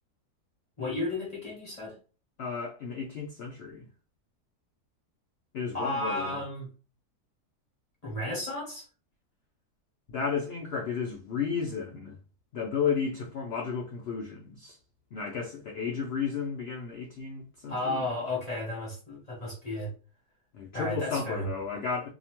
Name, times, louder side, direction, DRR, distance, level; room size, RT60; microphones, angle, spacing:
voice 1, 0.8-2.0 5.7-6.7 8.0-8.9 17.7-19.9 20.7-21.5, left 1 dB, 35° left, 0.6 m, -33 dB
voice 2, 2.4-3.9 5.5-6.4 10.1-12.2 12.5-14.8 15.1-18.0 20.5-22.1, left 6 dB, 80° left, 0.5 m, -33 dB
2.8 x 2.1 x 2.8 m
omnidirectional pair, 1.7 m